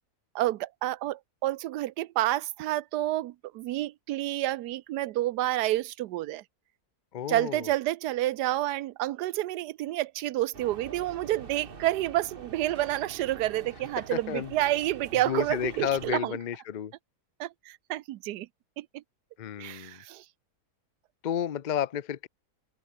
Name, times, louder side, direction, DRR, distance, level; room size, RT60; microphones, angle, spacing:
voice 1, 0.3-6.4 7.3-16.4 17.4-18.5 18.8-19.0 19.6-20.2, right 15 dB, 90° right, 1.2 m, -29 dB
voice 2, 7.1-7.7 14.0-14.5 15.1-16.9 19.4-20.0 21.2-22.3, left 9 dB, 55° left, 0.5 m, -32 dB
sound 1, 10.5-16.2, right 5 dB, 35° right, 1.5 m, -46 dB
open air
omnidirectional pair, 1.7 m